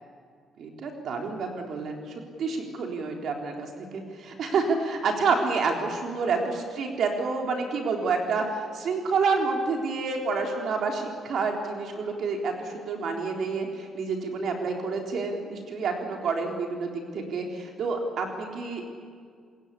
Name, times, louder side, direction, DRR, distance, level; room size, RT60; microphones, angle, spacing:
voice 1, 0.6-18.9, right 4 dB, 65° right, 2 dB, 3.7 m, -29 dB
26.5 x 21.0 x 8.4 m, 2.1 s
cardioid pair, 90°, 0 cm